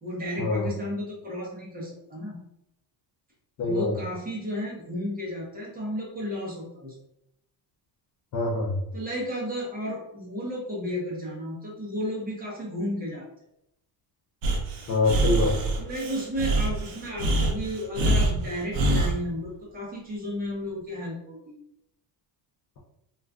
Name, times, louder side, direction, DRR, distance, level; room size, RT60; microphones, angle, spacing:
voice 1, 0.0-2.4 3.6-6.9 8.9-13.3 15.8-21.6, equal, 20° right, -5 dB, 0.7 m, -33 dB
voice 2, 3.6-3.9 8.3-8.8 14.9-15.6, left 3 dB, 40° left, -3 dB, 0.5 m, -24 dB
Breathing, 14.4-19.2, right 1 dB, 65° right, 0.7 m, -25 dB
2.4 x 2.3 x 3.4 m, 0.78 s
cardioid pair, 175°, 47 cm